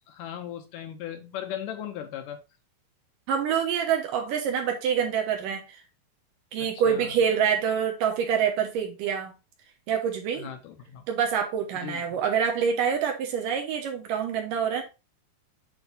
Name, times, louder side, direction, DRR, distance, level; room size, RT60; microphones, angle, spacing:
voice 1, 0.1-2.4 6.6-7.2 10.4-11.0 11.7-12.2, left 10 dB, 75° left, 2.1 m, -38 dB
voice 2, 3.3-5.8 6.5-9.3 9.9-10.5 11.1-14.8, right 7 dB, 70° right, 2.5 m, -26 dB
8.1 x 3.9 x 4.0 m
omnidirectional pair, 4.3 m